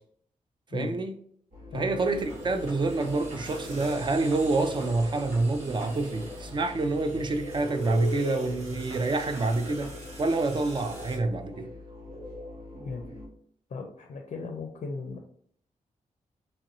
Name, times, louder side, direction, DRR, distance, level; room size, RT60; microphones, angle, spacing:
voice 1, 0.7-1.2 1.7-9.9 10.2-11.7, right 3 dB, 35° right, 0.4 m, -27 dB
sound 1, 1.5-13.3, left 1 dB, 80° right, 1.4 m, -41 dB
sound 2, 2.0-11.2, right 1 dB, 55° right, 1.1 m, -46 dB
voice 2, 13.7-15.3, left 4 dB, 55° left, 0.4 m, -36 dB
3.0 x 2.5 x 2.9 m
cardioid pair, 95°, 14 cm